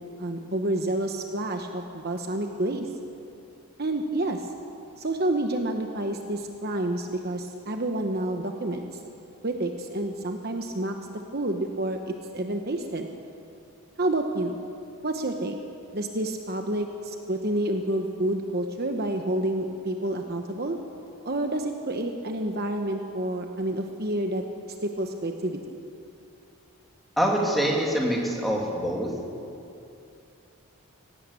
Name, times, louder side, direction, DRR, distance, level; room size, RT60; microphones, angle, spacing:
voice 1, 0.2-2.9 3.8-4.5 5.0-8.9 9.4-13.1 14.0-14.6 15.0-15.6 15.9-20.8 21.2-24.4 24.8-25.6, right 1 dB, 45° right, 4 dB, 1.1 m, -29 dB
voice 2, 27.2-29.1, equal, ahead, -2 dB, 2.8 m, -25 dB
18.5 x 17.0 x 8.5 m, 2.7 s
head